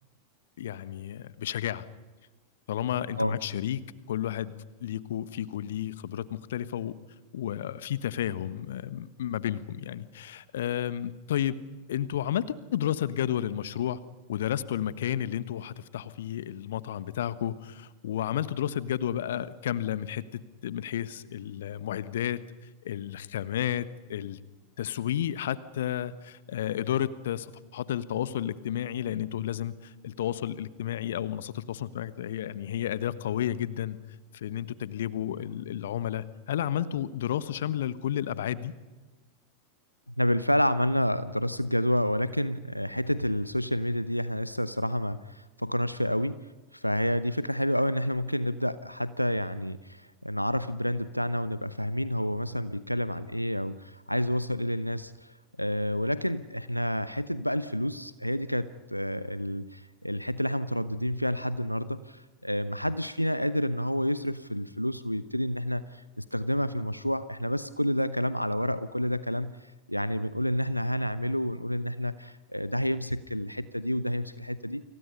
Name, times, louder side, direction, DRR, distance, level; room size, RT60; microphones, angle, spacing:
voice 1, 0.6-1.8 2.7-3.8 4.1-4.5 4.8-7.0 7.3-11.6 11.9-14.0 14.3-22.4 22.8-24.4 24.8-34.0 34.3-38.7, left 11 dB, 60° left, 16 dB, 1.3 m, -32 dB
voice 2, 40.2-46.4 46.7-74.8, equal, 90° left, 14 dB, 0.8 m, -29 dB
29.5 x 27.5 x 5.5 m, 1.2 s
figure-of-eight pair, 90°, 0 cm